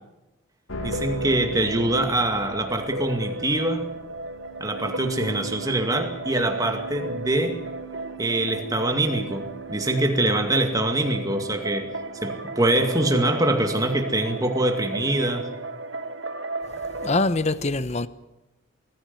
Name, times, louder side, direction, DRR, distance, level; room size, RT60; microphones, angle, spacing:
sound 1, 0.7-13.0, right 3 dB, 75° left, 2.3 m, -41 dB
voice 1, 0.8-3.9 4.6-7.6 8.2-11.9 12.2-15.5, right 1 dB, 15° right, 2.2 m, -24 dB
sound 2, 0.8-17.2, right 2 dB, 60° right, 1.3 m, -35 dB
voice 2, 17.0-18.1, left 2 dB, 30° left, 0.8 m, -23 dB
21.0 x 14.5 x 9.5 m
head